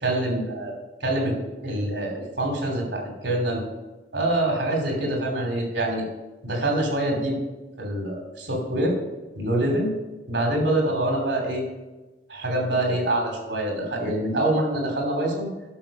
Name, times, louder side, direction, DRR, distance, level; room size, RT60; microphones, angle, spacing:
voice 1, 0.0-0.8 1.0-1.3 1.6-3.6 4.1-6.1 6.4-7.4 7.8-8.9 9.3-9.9 10.3-11.6 12.3-15.5, right 1 dB, 80° right, 2 dB, 2.9 m, -25 dB
12.0 x 6.4 x 5.3 m, 1.2 s
head